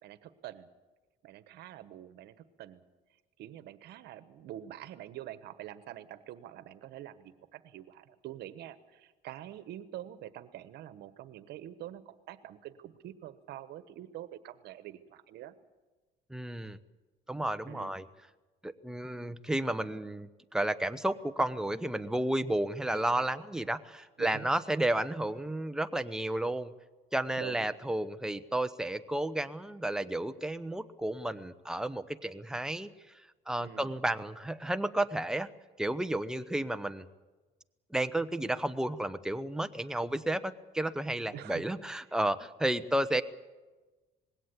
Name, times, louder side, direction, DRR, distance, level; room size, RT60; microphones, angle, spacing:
voice 1, 0.0-0.7 1.2-2.8 3.4-15.5 17.7-17.9 22.9-23.3 24.2-24.5 27.4-27.7 33.6-33.9 41.3-41.6, right 12 dB, 75° right, 13 dB, 1.3 m, -46 dB
voice 2, 16.3-16.8 17.3-18.1 18.6-26.7 27.1-32.9 33.5-35.5 35.8-37.0 37.9-43.2, right 1 dB, 5° right, 10 dB, 0.9 m, -32 dB
20.5 x 17.0 x 8.4 m, 1.2 s
cardioid pair, 110°, 17 cm